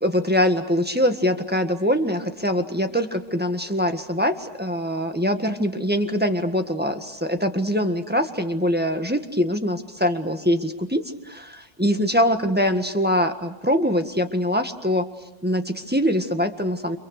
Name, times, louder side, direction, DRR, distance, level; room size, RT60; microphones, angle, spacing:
voice 1, 0.0-15.0 15.4-17.0, equal, 10° right, 5 dB, 1.6 m, -23 dB
30.0 x 26.5 x 6.6 m, 0.91 s
omnidirectional pair, 1.3 m